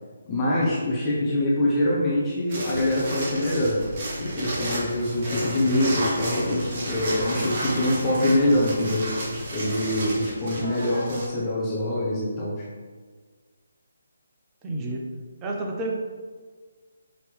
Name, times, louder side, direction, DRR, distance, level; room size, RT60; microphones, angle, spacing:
voice 1, 0.3-3.8 4.2-9.1 9.5-12.6, left 1 dB, 20° left, -7 dB, 0.8 m, -24 dB
sound 1, 2.5-11.3, right 1 dB, 40° right, 1.1 m, -31 dB
voice 2, 14.6-15.1 15.4-15.9, right 1 dB, 20° right, -1 dB, 0.6 m, -30 dB
5.1 x 3.0 x 3.3 m, 1.5 s
figure-of-eight pair, 145°, 0 cm